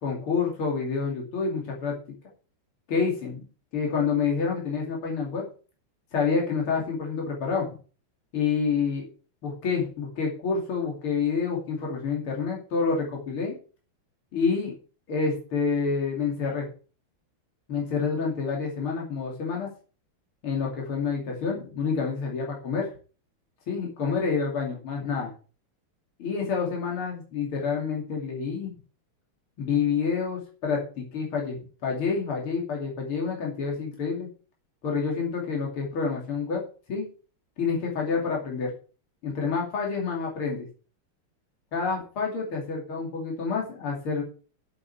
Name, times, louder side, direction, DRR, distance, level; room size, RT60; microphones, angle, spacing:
voice 1, 0.0-2.0 2.9-3.4 3.7-5.4 6.1-7.8 8.3-9.1 9.4-13.6 14.3-14.7 15.1-16.7 17.7-19.7 20.4-22.9 23.7-25.3 26.2-28.7 29.6-34.3 34.8-36.6 36.9-37.1 37.6-38.7 39.2-40.7 41.7-44.2, left 5 dB, 70° left, -1 dB, 3.6 m, -28 dB
8.1 x 7.9 x 6.9 m, 0.37 s
omnidirectional pair, 2.4 m